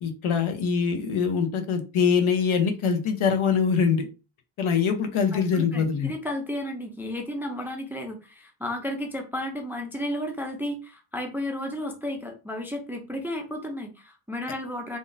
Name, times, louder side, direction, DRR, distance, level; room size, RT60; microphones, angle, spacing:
voice 1, 0.0-4.1 4.6-6.1, left 6 dB, 75° left, 6 dB, 0.8 m, -23 dB
voice 2, 5.3-15.0, left 1 dB, 5° right, 3 dB, 0.3 m, -33 dB
3.7 x 2.6 x 2.5 m, 0.31 s
wide cardioid pair, 145°, 49 cm